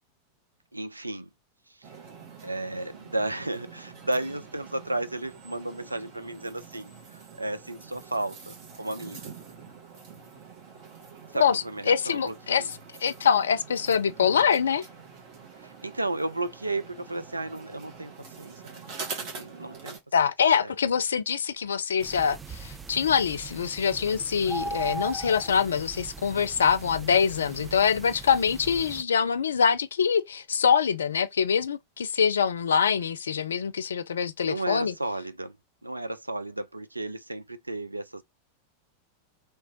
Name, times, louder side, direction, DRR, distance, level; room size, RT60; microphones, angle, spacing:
voice 1, 0.7-1.3 1.7-1.9 2.4-9.3 11.3-12.7 15.6-18.1 18.4-18.8 19.2-20.0 20.6-20.7 27.5-28.0 34.4-35.6 35.8-38.2, right 2 dB, 85° right, 0.4 m, -33 dB
sound 1, 1.8-20.0, right 5 dB, 45° right, 1.4 m, -45 dB
voice 2, 11.4-12.6 13.0-14.9 20.1-34.9, left 7 dB, 70° left, 0.3 m, -24 dB
sound 2, 22.0-29.0, right 3 dB, 15° right, 0.4 m, -39 dB
3.2 x 2.9 x 2.9 m
figure-of-eight pair, 90°, 0 cm